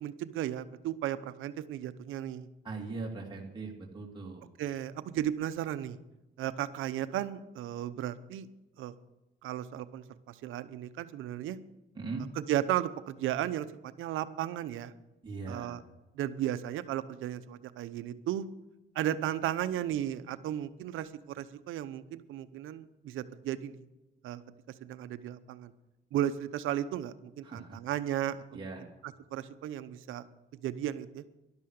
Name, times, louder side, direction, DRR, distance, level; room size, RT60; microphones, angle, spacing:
voice 1, 0.0-2.5 4.6-6.0 6.4-8.5 8.8-8.9 9.4-11.6 12.4-14.9 15.5-15.8 16.2-18.4 18.9-23.7 24.2-24.4 24.8-25.7 26.1-30.2 30.6-31.2, right 11 dB, 85° right, 13 dB, 0.9 m, -35 dB
voice 2, 2.6-4.5 11.9-12.2 15.2-15.8 27.4-27.8 28.5-28.9, right 3 dB, 25° right, -2 dB, 2.7 m, -40 dB
12.5 x 11.5 x 6.6 m, 0.98 s
cardioid pair, 90°, 20 cm